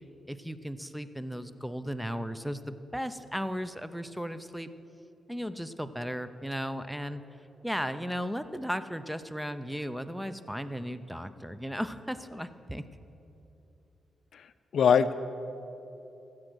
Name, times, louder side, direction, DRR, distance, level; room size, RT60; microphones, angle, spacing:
voice 1, 0.3-4.7 5.3-7.2 7.6-12.8, equal, 5° right, 12 dB, 0.5 m, -35 dB
voice 2, 14.7-15.1, left 7 dB, 70° left, 13 dB, 0.4 m, -22 dB
15.5 x 7.6 x 6.2 m, 2.9 s
cardioid pair, 85°, 0 cm